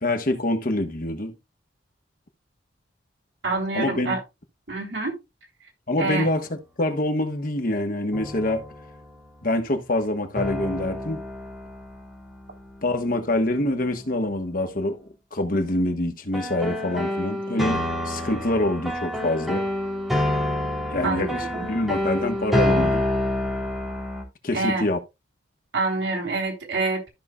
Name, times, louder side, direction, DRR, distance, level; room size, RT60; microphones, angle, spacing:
voice 1, 0.0-1.3 3.7-4.2 5.9-8.6 9.4-11.2 12.8-15.0 15.3-19.6 20.9-23.1 24.4-25.0, left 1 dB, 50° left, 1.3 m, -25 dB
voice 2, 3.4-4.2 4.7-5.2 6.0-6.3 21.0-21.7 24.5-24.8 25.7-27.1, right 3 dB, 75° right, 3.3 m, -26 dB
sound 1, 6.1-6.2 8.1-9.1 10.3-13.6 16.3-24.2, left 1 dB, ahead, 3.2 m, -28 dB
13.5 x 5.8 x 2.3 m
head